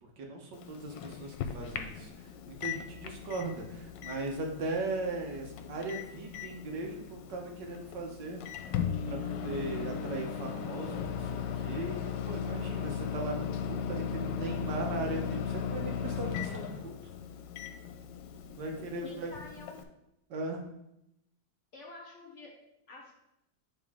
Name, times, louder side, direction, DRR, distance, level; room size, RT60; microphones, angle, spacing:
voice 1, 0.2-2.1 2.5-8.4 9.1-16.9 18.6-19.3 20.3-20.6, right 2 dB, 75° right, 1 dB, 1.6 m, -38 dB
Microwave oven, 0.5-19.8, left 7 dB, 80° left, 1.2 m, -37 dB
voice 2, 18.7-19.8 21.7-22.5 22.9-23.1, left 3 dB, 50° left, -1 dB, 1.0 m, -48 dB
8.5 x 3.7 x 3.5 m, 0.84 s
omnidirectional pair, 2.0 m